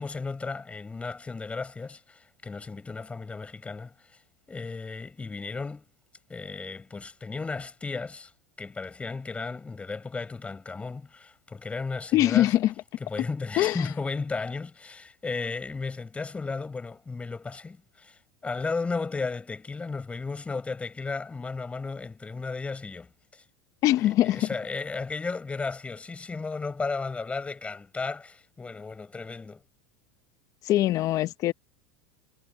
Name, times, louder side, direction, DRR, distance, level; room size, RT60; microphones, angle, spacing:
voice 1, 0.0-3.9 4.5-5.9 6.3-8.3 8.6-12.5 13.0-23.4 24.0-29.6, left 4 dB, 15° left, 6.6 m, -34 dB
voice 2, 12.1-12.7 13.6-13.9 23.8-24.5 30.6-31.5, left 14 dB, 45° left, 1.0 m, -22 dB
supercardioid pair, 110°, 8 cm